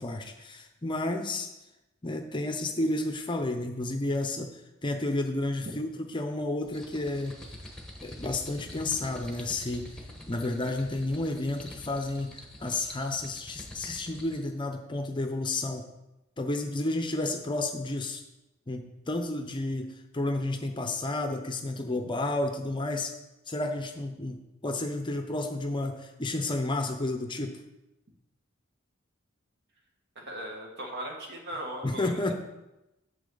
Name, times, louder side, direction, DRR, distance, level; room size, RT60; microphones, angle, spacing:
voice 1, 0.0-1.5 2.0-7.3 8.0-10.0 10.3-15.9 16.4-18.2 18.7-23.2 23.5-27.6 31.8-32.3, left 2 dB, 25° left, 5 dB, 0.6 m, -31 dB
sound 1, 6.6-14.5, left 1 dB, 5° left, 1.2 m, -46 dB
voice 2, 30.1-32.3, right 1 dB, 55° right, 1 dB, 1.7 m, -38 dB
8.7 x 7.0 x 3.9 m, 0.96 s
head